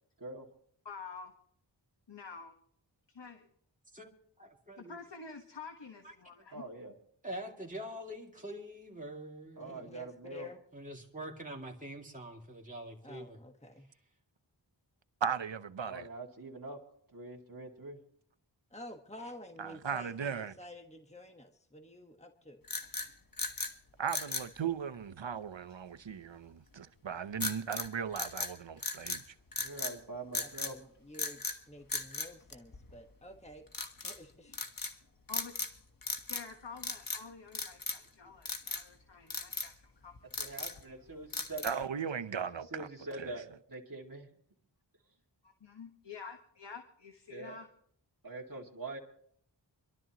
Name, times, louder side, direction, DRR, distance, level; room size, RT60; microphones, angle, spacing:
voice 1, 0.8-1.3 2.1-2.5 3.1-3.5 4.8-6.6 33.8-33.9 35.3-35.5 36.3-40.6 45.4-47.7, left 5 dB, 65° left, 1.4 m, -48 dB
voice 2, 4.4-5.0 6.0-6.5 7.2-10.0 10.7-13.4, right 1 dB, 15° right, 2.4 m, -45 dB
voice 3, 6.5-6.9 9.6-10.5 15.9-16.8 17.1-18.0 29.6-30.8 40.4-41.8 42.7-44.3 47.3-47.6 48.2-49.0, right 3 dB, 45° right, 2.3 m, -44 dB
voice 4, 9.6-10.6 13.0-13.9 18.7-22.6 30.4-33.6 34.0-34.6, left 1 dB, 15° left, 1.4 m, -50 dB
voice 5, 15.2-16.1 19.6-20.5 24.0-29.2 41.6-42.9 43.2-43.3, right 7 dB, 75° right, 0.8 m, -37 dB
sound 1, 22.6-23.7 24.1-24.5 27.4-27.9 28.2-29.2 29.5-30.0 30.3-30.7 31.1-31.6 31.9-33.1 33.7-34.2 34.5-34.9 35.3-35.8 36.0-36.5 36.8-37.2 37.5-38.1 38.5-38.9 39.3-39.7 40.1-40.8 41.3-41.9, left 3 dB, 45° left, 1.4 m, -37 dB
26.0 x 12.5 x 3.0 m
wide cardioid pair, 50°, 45 cm